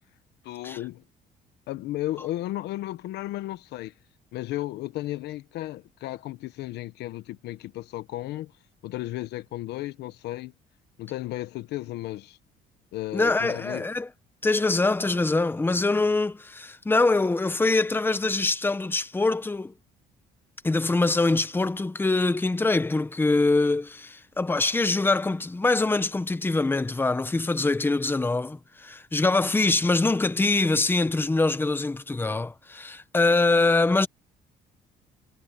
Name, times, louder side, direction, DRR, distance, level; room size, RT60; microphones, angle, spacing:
voice 1, 0.4-1.0 1.7-3.9 4.3-8.5 8.8-10.5 11.0-12.4 12.9-13.9, left 16 dB, 80° left, 1.2 m, -34 dB
voice 2, 13.1-14.1 14.4-19.7 20.6-34.1, left 3 dB, 10° left, 1.1 m, -24 dB
cardioid pair, 110°, 17 cm